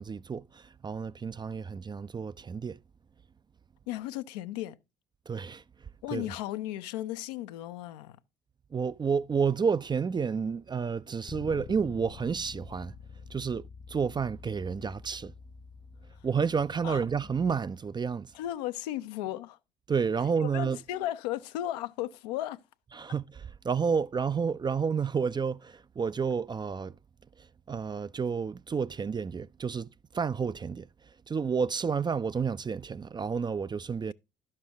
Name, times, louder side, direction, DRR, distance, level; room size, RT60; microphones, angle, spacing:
voice 1, 0.0-2.8 5.3-5.6 6.1-6.3 8.7-12.9 13.3-15.3 16.2-18.3 19.9-20.8 22.9-27.0 27.7-30.9 31.3-34.1, right 6 dB, 20° right, 0.4 m, -30 dB
voice 2, 3.9-4.8 6.0-8.2 16.8-17.0 18.3-19.6 20.4-22.6, left 13 dB, 75° left, 0.6 m, -35 dB
Bass guitar, 11.3-17.5, left 6 dB, 30° left, 0.6 m, -48 dB
12.0 x 6.7 x 3.4 m
hypercardioid pair, 50°, 21 cm